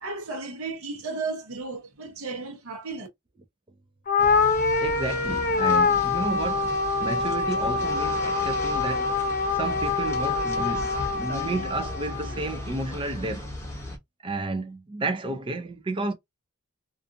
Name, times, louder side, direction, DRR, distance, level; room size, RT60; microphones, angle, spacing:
voice 1, 0.0-3.1, right 3 dB, 80° right, 0.8 m, -34 dB
sound 1, 4.1-12.6, left 4 dB, 40° left, 0.5 m, -25 dB
sound 2, 4.2-14.0, left 1 dB, 10° left, 0.7 m, -37 dB
voice 2, 4.8-13.5 14.2-16.1, right 2 dB, 25° right, 0.4 m, -32 dB
2.5 x 2.4 x 2.5 m
head